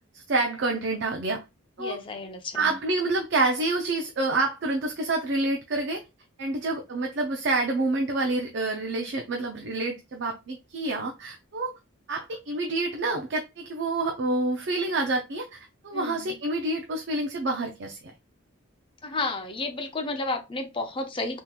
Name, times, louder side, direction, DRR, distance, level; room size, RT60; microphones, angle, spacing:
voice 1, 0.1-1.4 1.8-2.0 2.5-6.0 6.4-11.7 12.1-18.0, right 2 dB, 55° right, 0.5 m, -28 dB
voice 2, 1.8-2.7 15.9-16.4 19.0-21.4, left 2 dB, 25° left, 0.5 m, -32 dB
3.7 x 2.9 x 2.3 m
head